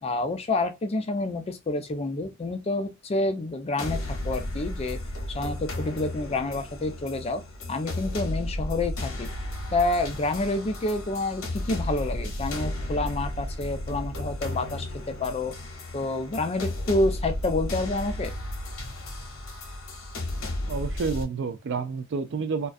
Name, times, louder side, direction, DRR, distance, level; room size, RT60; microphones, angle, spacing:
voice 1, 0.0-5.0 5.3-7.4 7.7-9.3 9.7-15.5 15.9-18.3, left 2 dB, 30° left, 0.4 m, -28 dB
sound 1, 3.8-21.2, left 1 dB, 65° left, 0.8 m, -34 dB
voice 2, 20.7-22.7, right 4 dB, 55° right, 0.4 m, -29 dB
2.3 x 2.2 x 2.4 m
head